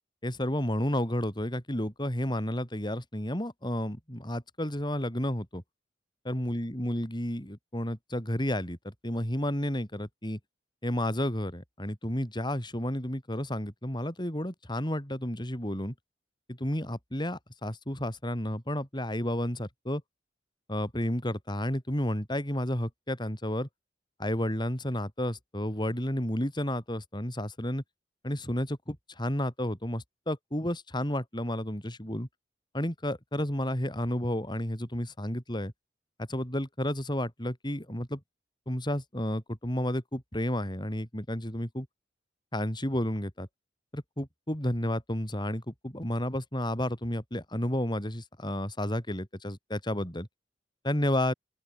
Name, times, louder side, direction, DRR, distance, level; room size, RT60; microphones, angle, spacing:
voice 1, 0.2-5.6 6.2-10.4 10.8-15.9 16.5-20.0 20.7-23.7 24.2-27.8 28.2-32.3 32.7-35.7 36.2-38.2 38.7-41.9 42.5-43.5 43.9-50.3 50.8-51.3, left 1 dB, 25° left, 6.8 m, -31 dB
open air
head